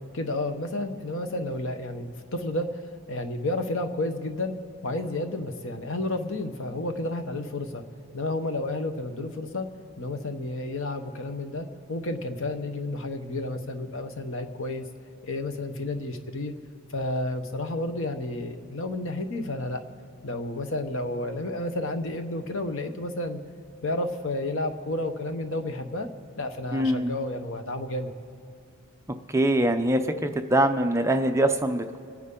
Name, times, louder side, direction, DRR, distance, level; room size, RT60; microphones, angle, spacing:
voice 1, 0.1-2.8 3.1-4.6 4.8-7.8 8.1-9.7 10.0-14.9 15.2-16.5 16.9-19.8 20.2-23.4 23.8-26.1 26.4-28.1, left 2 dB, 60° left, 7 dB, 1.0 m, -31 dB
voice 2, 26.7-27.1 29.3-32.0, right 1 dB, 15° right, 6 dB, 0.5 m, -23 dB
26.5 x 9.8 x 3.8 m, 2.7 s
head